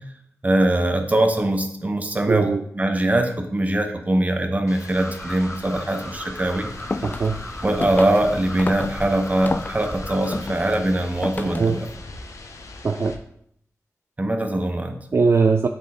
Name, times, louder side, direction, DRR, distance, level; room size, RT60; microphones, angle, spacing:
voice 1, 0.4-6.7 7.6-11.9 14.2-15.0, right 1 dB, 25° right, 5 dB, 1.0 m, -22 dB
voice 2, 2.3-2.6 7.0-7.4 11.4-11.8 12.8-13.2 15.1-15.7, right 4 dB, 45° right, 6 dB, 0.4 m, -20 dB
sound 1, 4.7-13.2, left 3 dB, 65° left, 0.8 m, -41 dB
sound 2, 4.9-10.4, left 1 dB, 10° left, 0.9 m, -36 dB
sound 3, 6.7-11.9, left 3 dB, 30° left, 0.3 m, -32 dB
8.2 x 4.1 x 3.7 m, 0.70 s
cardioid pair, 65°, 6 cm